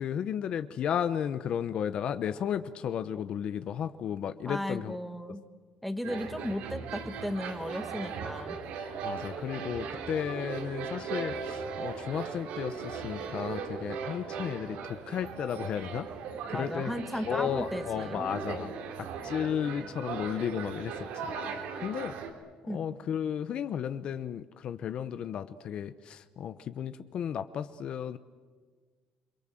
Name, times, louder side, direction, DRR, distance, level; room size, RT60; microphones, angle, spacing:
voice 1, 0.0-5.0 9.0-16.1 16.5-16.9 17.3-18.7 19.0-21.3 21.8-22.1 22.6-28.2, left 9 dB, 45° left, 12 dB, 0.8 m, -34 dB
voice 2, 4.4-5.4 5.8-8.6 16.5-18.2 22.7-22.8, equal, ahead, 8 dB, 1.5 m, -35 dB
sound 1, 6.0-22.3, right 5 dB, 70° right, 3.7 m, -38 dB
29.0 x 23.0 x 7.7 m, 1.5 s
cardioid pair, 160°, 2 cm